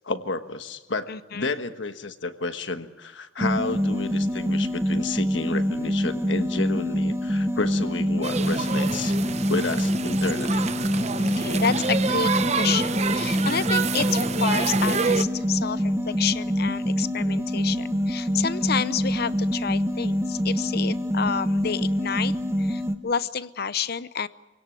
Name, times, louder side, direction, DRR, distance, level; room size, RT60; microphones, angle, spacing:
voice 1, 0.0-9.1 9.5-10.6 12.5-12.6, left 3 dB, 70° left, 9 dB, 1.4 m, -31 dB
voice 2, 1.1-1.6 11.2-24.3, left 7 dB, 55° left, 16 dB, 0.7 m, -29 dB
sound 1, 3.4-23.0, equal, 15° right, 1.1 m, -25 dB
sound 2, 8.2-15.2, right 5 dB, 35° right, 0.7 m, -27 dB
25.5 x 17.5 x 9.2 m, 1.2 s
head